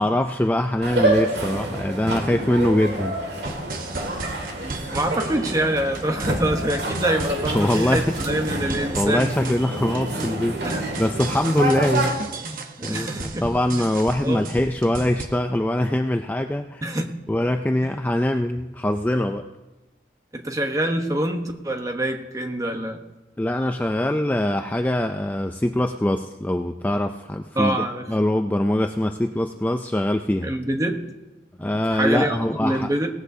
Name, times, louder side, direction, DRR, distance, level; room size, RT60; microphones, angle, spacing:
voice 1, 0.0-3.5 7.5-8.1 8.9-12.2 12.8-16.8 17.3-19.5 23.4-27.8 28.1-30.5 31.6-32.9, left 1 dB, 10° left, 5 dB, 0.3 m, -23 dB
sound 1, 0.8-12.1, right 1 dB, 75° right, 1.9 m, -28 dB
sound 2, 3.4-15.2, right 3 dB, 50° right, 1.0 m, -34 dB
voice 2, 4.9-9.6 10.6-10.8 11.6-11.7 12.8-13.5 14.2-14.5 16.8-17.1 20.3-23.0 27.6-28.1 30.4-31.0 31.6-33.1, right 1 dB, 20° right, 4 dB, 1.0 m, -25 dB
18.0 x 14.5 x 2.7 m, 1.1 s
head